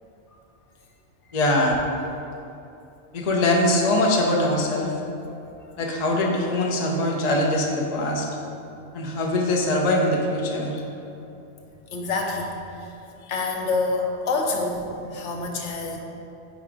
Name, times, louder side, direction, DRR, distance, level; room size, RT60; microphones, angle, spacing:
voice 1, 1.3-1.8 3.1-4.9 5.8-8.3 8.9-10.8, left 1 dB, 40° left, -1 dB, 0.7 m, -22 dB
voice 2, 11.9-16.0, left 3 dB, 70° left, 1 dB, 1.0 m, -28 dB
5.1 x 4.5 x 4.9 m, 2.8 s
omnidirectional pair, 1.3 m